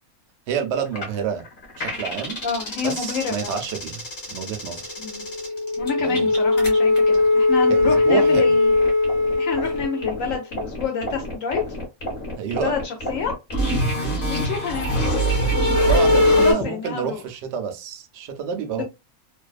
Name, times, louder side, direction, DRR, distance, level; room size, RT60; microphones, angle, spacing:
voice 1, 0.5-1.5 1.8-2.4 2.8-4.0 4.3-4.9 6.0-6.3 7.7-8.5 12.3-12.7 14.0-14.2 15.6-18.8, right 7 dB, 65° right, 0.7 m, -28 dB
sound 1, 0.9-1.0 1.4-16.5, left 2 dB, 45° left, 0.8 m, -21 dB
voice 2, 2.4-3.6 5.0-5.2 5.8-8.7 9.4-11.7 12.6-13.3 14.3-15.0 16.0-17.2 18.7-18.8, left 6 dB, 70° left, 0.9 m, -28 dB
2.6 x 2.2 x 2.3 m
omnidirectional pair, 1.6 m